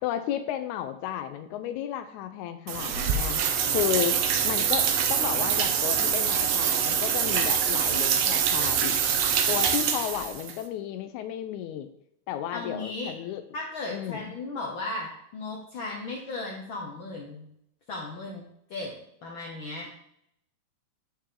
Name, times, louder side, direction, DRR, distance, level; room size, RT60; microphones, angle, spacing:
voice 1, 0.0-3.4 3.7-4.2 4.4-9.0 9.5-11.9 12.3-13.4 13.9-14.3, left 11 dB, 85° left, 9 dB, 2.0 m, -33 dB
sound 1, 2.7-10.5, right 8 dB, 75° right, 1.7 m, -25 dB
voice 2, 12.5-13.1 13.5-17.5 17.9-18.9 19.2-19.9, left 2 dB, 70° left, -2 dB, 1.2 m, -36 dB
9.8 x 4.4 x 3.7 m, 0.74 s
omnidirectional pair, 3.3 m